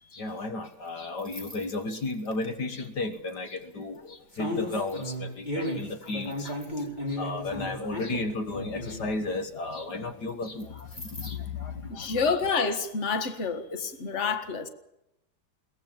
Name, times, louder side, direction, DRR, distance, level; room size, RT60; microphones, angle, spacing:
voice 1, 0.1-12.2, left 3 dB, 65° left, 2.1 m, -34 dB
sound 1, 1.2-2.5 3.3-3.6 4.3-9.1 10.6-11.3, left 1 dB, 25° left, 5.6 m, -34 dB
voice 2, 11.9-14.7, left 5 dB, 40° left, 2.1 m, -28 dB
22.5 x 19.0 x 7.4 m
omnidirectional pair, 1.9 m